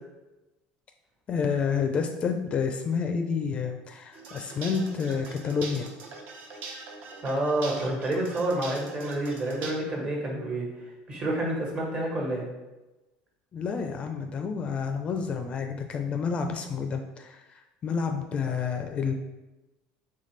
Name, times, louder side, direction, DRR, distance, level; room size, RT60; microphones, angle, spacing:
voice 1, 1.3-5.9 13.5-19.1, left 6 dB, 30° left, 5 dB, 0.4 m, -29 dB
sound 1, 4.1-9.7, right 4 dB, 55° right, 0.8 m, -42 dB
voice 2, 7.2-10.7 11.1-12.4, right 1 dB, 35° right, -2 dB, 1.4 m, -28 dB
4.1 x 3.7 x 3.2 m, 1.1 s
cardioid pair, 130°, 4 cm